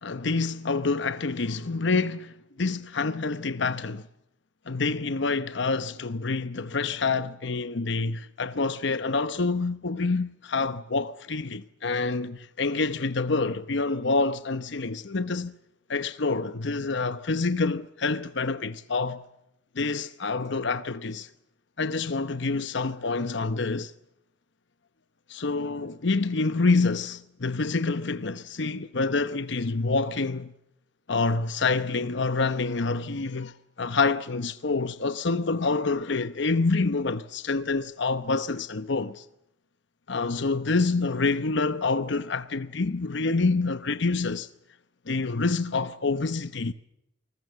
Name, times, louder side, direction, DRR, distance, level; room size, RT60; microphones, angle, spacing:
voice 1, 0.0-4.1 4.7-15.5 15.9-19.2 19.8-21.3 21.8-23.9 25.3-30.5 31.1-39.2 40.1-44.5 45.1-46.7, left 3 dB, 65° left, 0.9 m, -27 dB
28.5 x 20.5 x 6.9 m
head